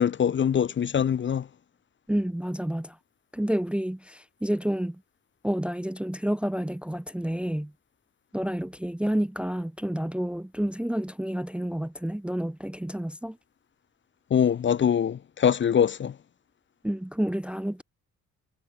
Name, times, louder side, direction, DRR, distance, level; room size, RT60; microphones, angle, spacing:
voice 1, 0.0-1.5 14.3-16.2, left 8 dB, 40° left, 0.7 m, -23 dB
voice 2, 2.1-3.0 3.3-5.0 5.4-7.7 8.3-13.4 16.8-17.8, equal, 5° right, 0.6 m, -29 dB
cardioid pair, 90°, 30 cm